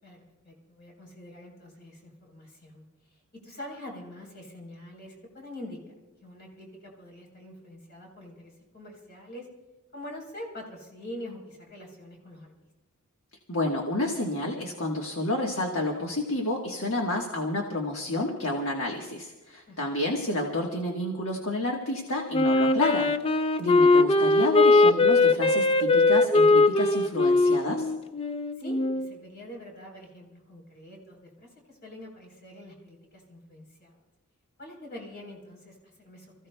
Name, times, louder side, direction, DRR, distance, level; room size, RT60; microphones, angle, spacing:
voice 1, 0.0-2.8 3.1-5.8 6.2-9.5 9.9-12.5 19.7-19.8 28.6-33.9 34.6-36.3, left 1 dB, 45° left, 0 dB, 3.9 m, -45 dB
voice 2, 13.5-27.9, left 2 dB, 65° left, 0 dB, 1.4 m, -30 dB
Wind instrument woodwind instrument, 22.3-29.1, left 2 dB, 25° left, 0.4 m, -21 dB
30.0 x 15.0 x 2.3 m, 1.1 s
head